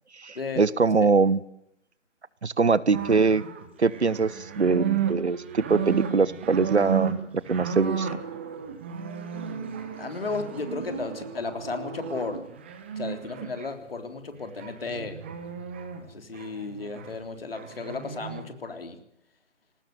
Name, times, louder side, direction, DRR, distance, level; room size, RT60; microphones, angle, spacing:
voice 1, 0.2-1.4 2.4-3.4 3.8-7.2 7.5-8.1, right 4 dB, 60° right, 20 dB, 1.1 m, -23 dB
sound 1, 2.9-13.7 14.6-16.0 16.3-17.1 17.5-18.4, right 8 dB, 10° right, 1.0 m, -33 dB
voice 2, 9.6-12.4 13.0-15.2 16.1-19.0, left 4 dB, 50° left, 7 dB, 3.5 m, -34 dB
21.0 x 19.0 x 9.3 m, 0.76 s
figure-of-eight pair, 150°, 38 cm